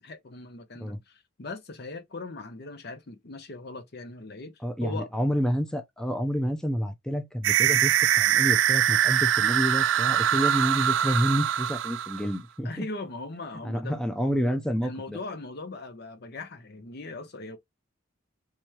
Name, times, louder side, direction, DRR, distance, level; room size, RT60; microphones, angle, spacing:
voice 1, 0.0-4.5 4.8-5.1 12.6-14.0 14.8-17.6, left 2 dB, 55° left, 0.7 m, -39 dB
voice 2, 4.6-12.9 13.6-15.2, equal, 5° left, 0.5 m, -29 dB
sound 1, 7.4-12.4, right 10 dB, 70° right, 0.3 m, -23 dB
3.5 x 2.9 x 3.0 m
head